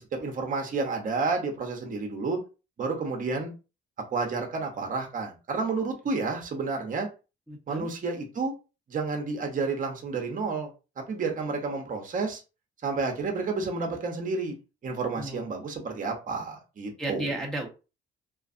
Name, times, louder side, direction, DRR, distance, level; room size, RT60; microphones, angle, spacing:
voice 1, 0.0-2.4 2.8-3.5 4.1-7.1 7.7-8.5 8.9-10.7 11.0-12.4 12.8-14.6 14.8-17.4, right 4 dB, 40° right, 2 dB, 0.8 m, -30 dB
voice 2, 7.5-7.9 15.2-15.5 17.0-17.7, right 1 dB, 5° left, -2 dB, 0.8 m, -33 dB
2.5 x 2.4 x 2.5 m, 0.31 s
cardioid pair, 90°, 20 cm